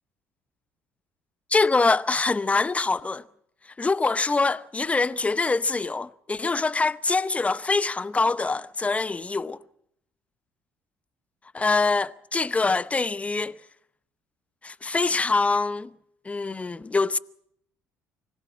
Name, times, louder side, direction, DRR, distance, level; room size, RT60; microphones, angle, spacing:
voice 1, 1.5-3.2 3.8-9.6 11.5-13.6 14.6-15.9 16.2-17.2, left 3 dB, 20° left, 0.8 m, -24 dB
24.5 x 16.5 x 7.4 m
supercardioid pair, 75°, 6 cm